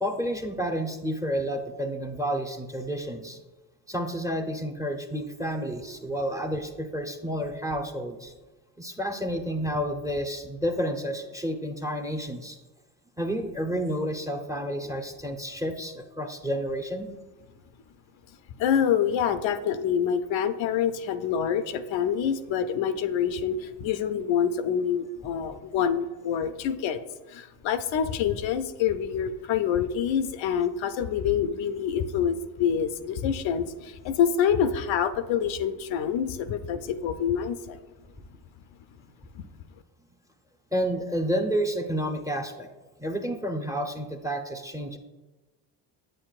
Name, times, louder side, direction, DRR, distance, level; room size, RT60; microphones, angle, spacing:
voice 1, 0.0-3.4 3.9-8.3 8.8-12.6 13.2-17.1 40.7-42.7 43.0-45.0, equal, 5° right, 5 dB, 0.7 m, -30 dB
voice 2, 18.6-27.0 27.3-37.8 39.3-39.4, left 8 dB, 70° left, 10 dB, 0.6 m, -26 dB
8.2 x 7.7 x 2.4 m, 1.2 s
supercardioid pair, 80°, 48 cm